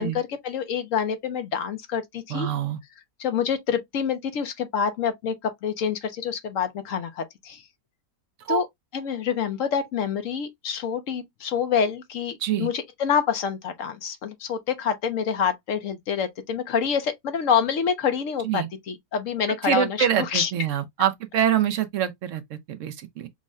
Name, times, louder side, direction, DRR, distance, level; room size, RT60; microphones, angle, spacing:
voice 1, 0.0-2.5 3.2-7.6 8.5-8.7 8.9-20.5, left 7 dB, 65° left, 0.9 m, -27 dB
voice 2, 2.3-2.8 8.4-8.6 12.4-12.7 18.4-18.7 19.6-23.3, right 10 dB, 65° right, 0.8 m, -25 dB
6.2 x 2.1 x 2.4 m
omnidirectional pair, 1.7 m